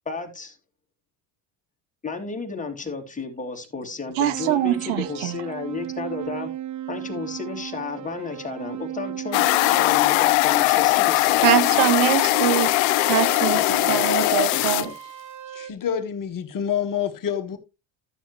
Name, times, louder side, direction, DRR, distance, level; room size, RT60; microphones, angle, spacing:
voice 1, 0.0-0.6 2.0-6.5 6.9-9.4 9.7-12.1 13.5-14.9, left 4 dB, 15° left, 2.6 m, -33 dB
voice 2, 4.2-5.4 11.4-12.7 13.0-14.9, right 12 dB, 70° right, 1.2 m, -23 dB
sound 1, 4.3-10.4 12.3-15.7, right 10 dB, 35° right, 1.0 m, -35 dB
sound 2, 9.3-14.9, left 19 dB, 80° left, 0.8 m, -20 dB
voice 3, 15.5-17.6, left 8 dB, 40° left, 1.4 m, -27 dB
13.0 x 7.1 x 3.0 m
supercardioid pair, 100°, 49 cm